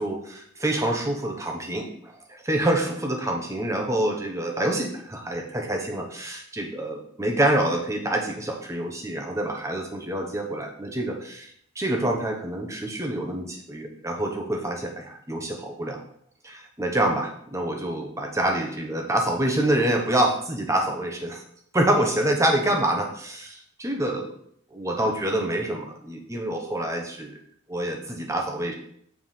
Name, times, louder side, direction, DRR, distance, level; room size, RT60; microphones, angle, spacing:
voice 1, 0.0-16.0 16.4-21.4 21.7-24.3 24.7-27.4 27.7-28.7, right 1 dB, 15° right, 2 dB, 1.1 m, -26 dB
7.2 x 4.7 x 5.8 m, 0.66 s
head